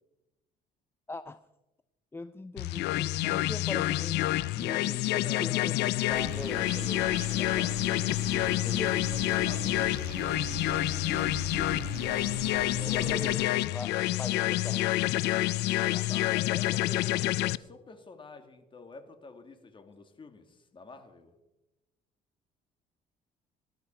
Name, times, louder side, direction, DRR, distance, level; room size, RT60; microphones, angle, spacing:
voice 1, 1.1-1.4 2.1-7.1 8.1-8.3 8.6-9.2 12.9-15.3 15.8-16.1, left 3 dB, 15° left, 12 dB, 0.5 m, -41 dB
sound 1, 2.6-17.6, left 17 dB, 85° left, 0.5 m, -28 dB
voice 2, 5.2-6.0 7.0-10.8 12.8-13.2 16.1-21.3, left 4 dB, 30° left, 6 dB, 2.2 m, -47 dB
sound 2, 6.1-13.4, right 8 dB, 85° right, 1.7 m, -41 dB
20.0 x 12.0 x 4.5 m, 0.98 s
cardioid pair, 110°, 17 cm